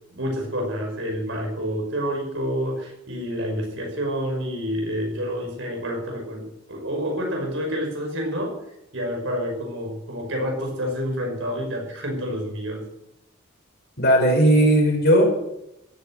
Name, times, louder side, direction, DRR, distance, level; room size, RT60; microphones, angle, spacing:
voice 1, 0.1-8.6 8.9-12.8, equal, 65° right, 1 dB, 5.6 m, -28 dB
voice 2, 14.0-15.2, right 1 dB, 50° left, 1 dB, 5.5 m, -16 dB
16.0 x 10.0 x 7.9 m, 0.85 s
head